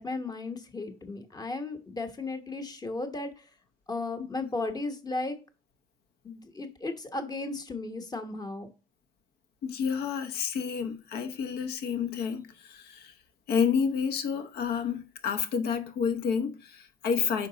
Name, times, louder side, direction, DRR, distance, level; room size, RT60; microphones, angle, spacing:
voice 1, 0.0-3.5 3.9-5.4 6.2-8.7, left 3 dB, 25° left, 1.1 m, -35 dB
voice 2, 9.6-13.1 13.5-17.5, left 6 dB, 70° left, 0.9 m, -29 dB
5.7 x 4.5 x 3.9 m
cardioid pair, 110°, 17 cm